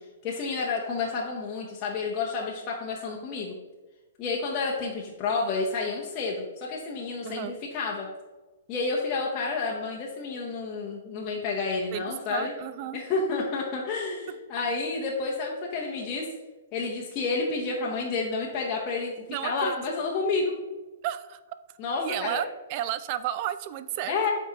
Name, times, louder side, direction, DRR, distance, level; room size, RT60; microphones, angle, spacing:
voice 1, 0.2-3.5 4.2-8.1 8.7-12.5 12.9-16.3 16.7-19.1 19.4-20.5 21.8-22.5 24.1-24.3, left 4 dB, 25° left, -3 dB, 0.8 m, -30 dB
voice 2, 11.9-13.0 19.3-20.0 21.0-21.4 22.0-24.3, right 12 dB, 35° right, 13 dB, 0.3 m, -33 dB
8.1 x 4.6 x 2.9 m, 1.2 s
hypercardioid pair, 160°, 0 cm